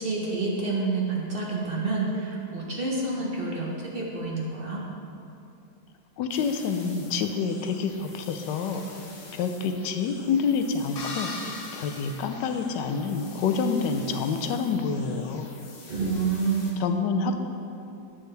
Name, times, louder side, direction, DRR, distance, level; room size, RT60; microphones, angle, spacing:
voice 1, 0.0-4.8 15.9-16.7, right 3 dB, 45° right, -3 dB, 0.7 m, -28 dB
voice 2, 6.2-8.8 9.3-15.5 16.8-17.4, left 5 dB, 75° left, 6 dB, 1.1 m, -27 dB
sound 1, 6.3-16.7, left 3 dB, 45° left, 1.0 m, -48 dB
sound 2, 11.0-13.2, left 3 dB, 60° left, 0.6 m, -39 dB
9.4 x 6.4 x 3.3 m, 2.6 s
omnidirectional pair, 2.0 m